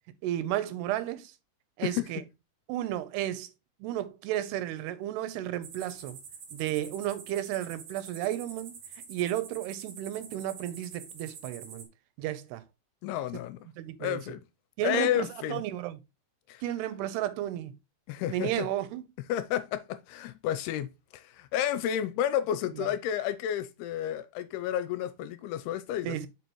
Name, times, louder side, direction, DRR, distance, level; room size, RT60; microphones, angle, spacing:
voice 1, 0.2-1.3 1.8-2.2 2.7-3.5 3.8-6.2 6.5-8.7 9.1-11.9 12.2-12.6 13.8-14.2 14.8-16.0 16.6-17.8 18.3-19.0 22.8-22.9 26.0-26.3, right 13 dB, 85° right, 2.8 m, -33 dB
sound 1, 5.6-11.8, right 6 dB, 55° right, 3.0 m, -46 dB
voice 2, 13.0-13.6 14.0-14.4 14.8-15.6 16.5-16.6 18.1-18.7 19.3-26.3, left 11 dB, 80° left, 2.5 m, -31 dB
6.9 x 5.8 x 3.0 m
omnidirectional pair, 4.6 m